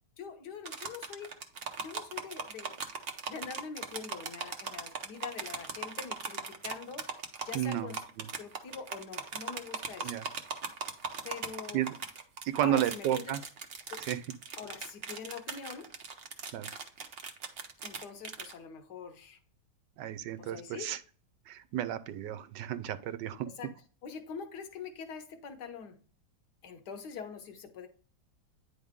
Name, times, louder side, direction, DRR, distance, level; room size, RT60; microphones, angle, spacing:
voice 1, 0.2-1.3 1.8-2.8 3.3-7.1 7.4-8.0 8.4-10.2 11.2-11.9 12.6-13.4 13.9-14.0 14.6-16.0 17.8-19.4 20.4-20.9 23.4-23.7 24.0-26.0 26.6-27.9, left 6 dB, 70° left, 1.6 m, -44 dB
sound 1, 0.7-18.5, right 5 dB, 50° right, 0.8 m, -39 dB
voice 2, 7.5-8.3 10.0-10.2 11.7-12.0 12.4-13.4 14.0-14.2 16.5-16.7 20.0-21.0 21.5-23.5, right 12 dB, 85° right, 1.3 m, -32 dB
9.4 x 3.8 x 3.6 m
omnidirectional pair, 1.9 m